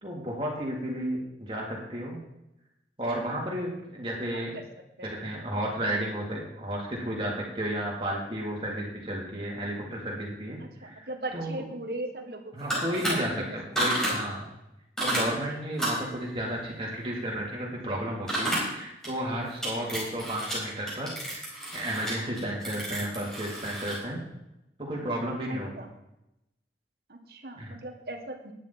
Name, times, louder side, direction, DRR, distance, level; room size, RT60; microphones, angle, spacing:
voice 1, 0.0-2.2 3.0-4.6 5.0-11.6 12.5-14.5 15.0-24.2 24.9-25.8 27.6-27.7, right 1 dB, 30° right, -3 dB, 3.3 m, -33 dB
voice 2, 10.6-12.8 13.1-13.2 14.0-14.1 25.5-25.9 27.1-28.5, right 1 dB, 60° right, 4 dB, 1.5 m, -38 dB
old phone, 12.6-13.1 13.8-14.1 15.0-15.2 15.8-16.1 18.3-18.6 19.0-19.1 19.6-20.5 20.9-24.0, right 1 dB, 5° left, 4.6 m, -30 dB
13.5 x 10.0 x 4.4 m, 0.88 s
head